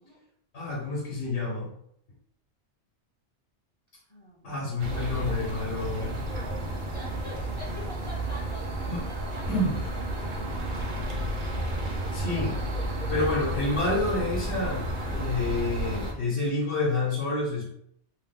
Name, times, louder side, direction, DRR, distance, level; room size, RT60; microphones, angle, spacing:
voice 1, 0.5-1.7 4.4-6.2 8.9-9.0 9.5-9.8 12.1-12.6 13.1-17.6, left 2 dB, 80° left, -4 dB, 1.1 m, -28 dB
voice 2, 4.1-4.6 6.9-9.5 10.1-10.3, left 1 dB, 35° left, -6 dB, 0.6 m, -45 dB
sound 1, 4.8-16.1, right 1 dB, 55° right, 0.7 m, -32 dB
2.8 x 2.1 x 3.5 m, 0.70 s
omnidirectional pair, 1.1 m